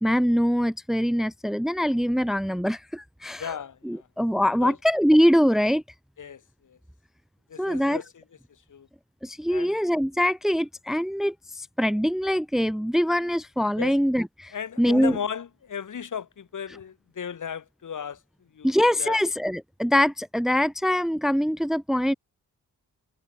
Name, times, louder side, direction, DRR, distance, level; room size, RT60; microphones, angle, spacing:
voice 1, 0.0-3.5 3.8-5.8 7.6-8.0 9.2-15.2 18.6-22.1, equal, ahead, 0.8 m, -23 dB
voice 2, 3.4-4.1 4.6-4.8 6.2-6.8 7.5-8.2 8.7-8.9 9.5-9.8 13.8-14.0 14.5-18.2 18.5-18.7 19.0-19.2, left 7 dB, 65° left, 6.9 m, -35 dB
cardioid pair, 85°, 32 cm